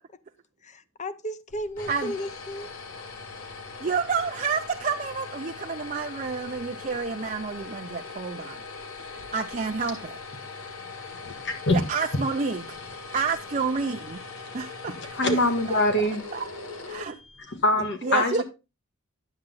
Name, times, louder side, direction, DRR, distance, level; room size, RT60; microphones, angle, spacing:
voice 1, 0.6-2.7, equal, 35° left, 0.7 m, -34 dB
sound 1, 1.5-17.7, left 4 dB, 80° left, 1.7 m, -40 dB
voice 2, 3.8-8.6 9.0-10.2 11.7-12.8 13.1-14.2 14.5-15.4 15.7-15.8 16.3-16.5 16.9-17.2 18.0-18.4, right 5 dB, 35° right, 0.5 m, -29 dB
voice 3, 11.2-11.8 15.2-16.2 17.5-18.4, left 1 dB, 55° left, 1.6 m, -23 dB
10.0 x 7.6 x 3.9 m
head